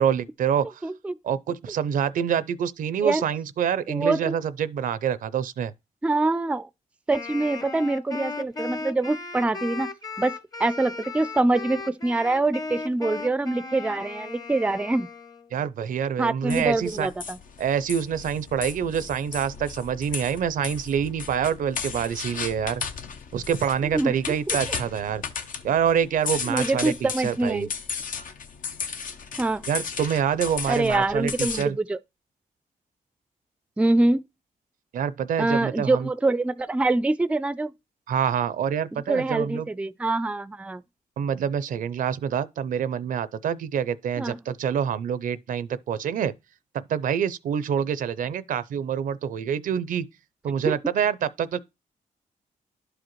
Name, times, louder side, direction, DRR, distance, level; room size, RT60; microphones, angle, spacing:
voice 1, 0.0-0.9 1.2-5.7 15.5-17.1 17.6-22.8 23.3-25.2 25.6-27.7 29.7-31.8 34.9-36.1 38.1-39.7 41.2-46.3 46.7-50.1 50.4-51.6, right 8 dB, 75° right, 0.5 m, -26 dB
voice 2, 0.8-1.2 3.0-3.2 3.9-4.3 6.0-6.7 7.1-9.9 10.2-10.3 10.6-15.1 16.2-17.4 23.8-24.6 26.5-27.7 29.4-29.6 30.7-32.0 33.8-34.2 35.4-37.7 38.9-40.8 44.2-44.4 50.6-50.8, right 2 dB, 10° right, 0.4 m, -25 dB
Wind instrument woodwind instrument, 7.1-15.5, left 4 dB, 30° left, 0.8 m, -36 dB
sound 1, 16.5-31.6, left 6 dB, 75° left, 0.8 m, -35 dB
11.0 x 4.9 x 3.1 m
cardioid pair, 85°, 14 cm